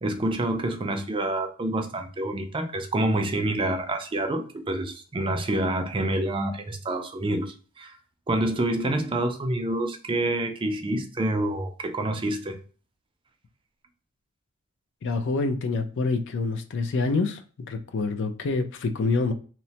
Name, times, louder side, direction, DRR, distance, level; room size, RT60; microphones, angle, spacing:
voice 1, 0.0-8.0 8.3-12.6, right 1 dB, 25° right, 0.4 m, -27 dB
voice 2, 15.0-17.4 17.7-19.3, left 3 dB, 60° left, 0.4 m, -26 dB
3.0 x 2.1 x 2.7 m
head